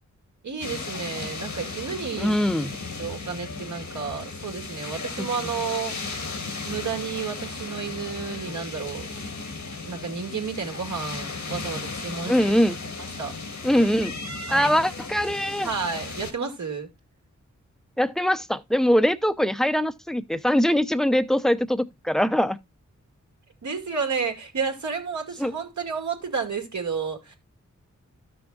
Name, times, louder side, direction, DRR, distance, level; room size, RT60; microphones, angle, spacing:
voice 1, 0.4-2.3 3.0-6.3 6.6-9.1 9.8-12.6 13.0-13.3 14.5-14.7 15.6-16.9 23.6-27.4, right 5 dB, 70° right, 2.1 m, -31 dB
sound 1, 0.6-16.3, left 3 dB, 75° left, 1.6 m, -35 dB
voice 2, 2.2-2.7 5.2-5.3 12.3-12.8 13.6-14.1 14.5-15.7 18.0-22.6 25.4-25.5, equal, ahead, 0.7 m, -22 dB
13.0 x 6.2 x 2.3 m
wide cardioid pair, 70°, 30 cm